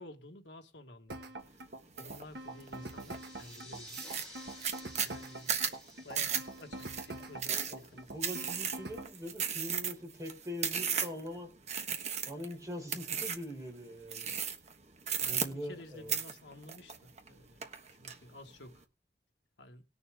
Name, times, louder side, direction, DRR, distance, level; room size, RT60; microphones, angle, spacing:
voice 1, 0.0-1.6 1.9-4.1 5.0-5.5 6.0-8.1 15.2-17.6 18.0-18.8 19.6-19.8, left 1 dB, 85° left, 1.5 m, -52 dB
sound 1, 1.1-9.1, right 2 dB, 70° right, 1.5 m, -44 dB
sound 2, 2.0-2.2 2.7-3.2 3.5-3.6 3.9-11.3 11.7-12.5 12.9-13.5 14.1-14.7 15.0-15.8 16.1-17.3 17.6-18.1, right 7 dB, 40° right, 1.3 m, -35 dB
sound 3, 2.2-8.5, equal, 5° left, 7.1 m, -54 dB
voice 2, 7.5-7.8 8.1-11.5 12.3-14.3 15.2-16.2, equal, 20° right, 4.6 m, -42 dB
19.5 x 6.9 x 3.5 m
head